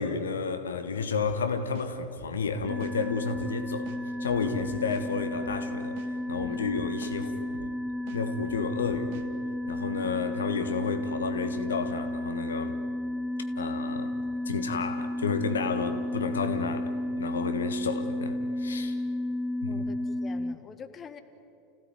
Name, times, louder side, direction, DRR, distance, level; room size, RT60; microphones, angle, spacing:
voice 1, 0.0-3.9 4.2-7.7 8.1-9.3 9.7-12.8 13.6-14.2 14.4-19.0 19.6-19.8, left 5 dB, 75° left, 1.3 m, -31 dB
sound 1, 1.7-3.0 3.3-3.5 3.9-5.1 5.4-5.6 6.0-7.2 7.5-7.7 8.1-9.3, right 7 dB, 55° right, 2.1 m, -48 dB
sound 2, 2.7-20.5, left 1 dB, 5° right, 0.5 m, -33 dB
voice 2, 19.7-21.2, left 6 dB, 25° left, 1.6 m, -45 dB
29.5 x 16.5 x 9.4 m
figure-of-eight pair, 80°, 0 cm